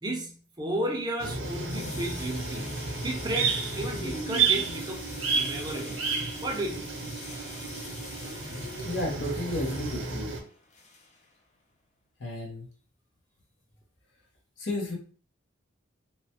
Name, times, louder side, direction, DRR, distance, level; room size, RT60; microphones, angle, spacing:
voice 1, 0.0-2.7 3.0-6.0 6.4-6.9 7.3-7.6, right 1 dB, 20° right, 0 dB, 0.5 m, -33 dB
sound 1, 1.2-10.4, right 5 dB, 80° right, 0.6 m, -31 dB
sound 2, 1.4-11.4, left 3 dB, 35° left, 0.4 m, -46 dB
voice 2, 8.8-10.3 12.2-12.7 14.6-15.0, left 1 dB, 70° left, -1 dB, 0.8 m, -32 dB
3.0 x 2.1 x 2.8 m, 0.40 s
head